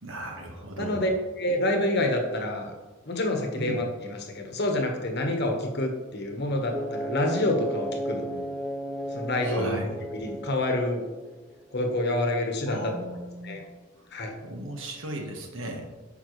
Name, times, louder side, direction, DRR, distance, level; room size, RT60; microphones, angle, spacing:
voice 1, 0.0-1.1 3.6-3.8 9.4-10.0 12.7-13.7 14.4-15.9, right 1 dB, 75° right, 1 dB, 1.5 m, -36 dB
voice 2, 0.8-1.1 1.4-2.7 3.0-8.5 9.1-9.8 10.1-11.0 11.7-12.9 13.4-13.6 14.1-14.3, left 1 dB, 55° left, 2 dB, 1.2 m, -27 dB
sound 1, 6.7-11.4, equal, ahead, 0.7 m, -34 dB
9.0 x 5.9 x 3.2 m, 1.2 s
head